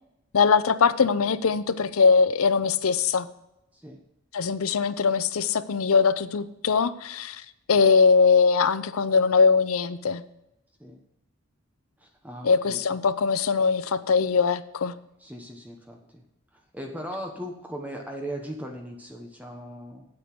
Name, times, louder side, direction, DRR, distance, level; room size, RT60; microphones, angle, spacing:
voice 1, 0.3-3.3 4.3-7.4 7.7-10.2 12.4-15.0, left 5 dB, 80° left, 13 dB, 0.6 m, -21 dB
voice 2, 12.0-12.8 15.2-16.2 16.5-20.1, equal, 5° right, 2 dB, 1.1 m, -38 dB
8.6 x 8.0 x 6.0 m, 0.89 s
head